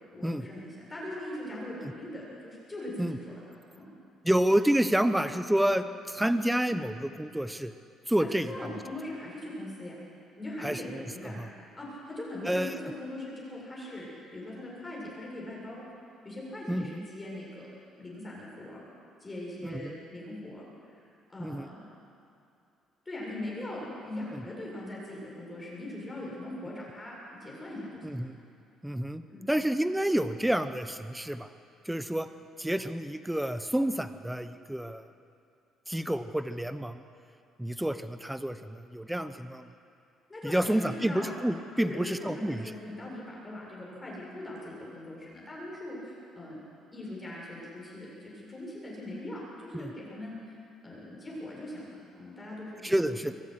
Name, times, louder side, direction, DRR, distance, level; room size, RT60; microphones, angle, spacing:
voice 1, 0.1-3.3 3.7-3.9 8.2-10.0 10.4-11.4 11.8-14.1 14.3-15.8 16.2-17.7 18.0-18.8 19.2-21.0 21.3-21.8 23.1-28.2 29.3-29.5 40.3-41.3 41.8-46.6 46.9-50.4 50.8-53.2, left 1 dB, 20° left, -4 dB, 7.4 m, -41 dB
voice 2, 4.2-7.7 8.1-8.5 10.6-11.5 12.5-12.8 16.7-17.1 19.6-20.0 21.4-21.7 28.0-28.4 28.8-29.2 29.5-31.5 31.8-32.3 32.6-35.0 35.9-37.0 37.6-39.7 40.4-42.7 49.7-49.9 52.8-53.3, right 1 dB, 5° right, 10 dB, 1.0 m, -29 dB
24.0 x 12.5 x 9.9 m, 2.6 s
cardioid pair, 125°, 0 cm